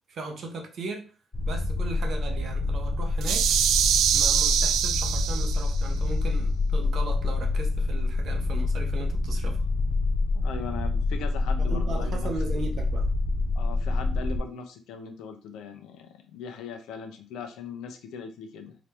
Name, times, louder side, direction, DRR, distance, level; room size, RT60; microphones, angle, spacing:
voice 1, 0.1-1.1 1.5-3.5 4.1-9.7 11.7-13.1, right 3 dB, 65° right, 4 dB, 1.0 m, -37 dB
sound 1, 1.3-14.4, left 2 dB, 20° left, 0.6 m, -27 dB
sound 2, 3.2-5.8, right 9 dB, 80° right, 0.3 m, -24 dB
voice 2, 10.3-12.3 13.5-18.8, left 6 dB, 90° left, 6 dB, 0.7 m, -39 dB
3.7 x 3.0 x 3.4 m, 0.34 s
cardioid pair, 90°, 0 cm